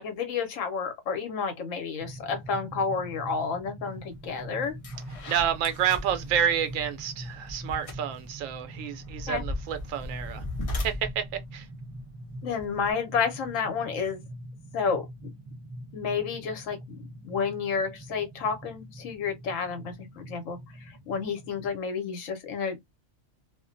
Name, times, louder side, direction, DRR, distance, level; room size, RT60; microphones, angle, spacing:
voice 1, 0.0-4.7 9.3-9.4 12.4-14.2 14.7-15.3 15.9-22.8, left 5 dB, 75° left, 1.1 m, -31 dB
sound 1, 2.0-21.8, right 1 dB, 20° right, 0.6 m, -43 dB
sound 2, 4.1-4.3 4.6-12.9, left 1 dB, 50° left, 0.4 m, -38 dB
voice 2, 5.3-10.4 10.8-11.3 11.5-11.7, right 9 dB, 80° right, 0.9 m, -29 dB
2.4 x 2.1 x 2.5 m
omnidirectional pair, 1.4 m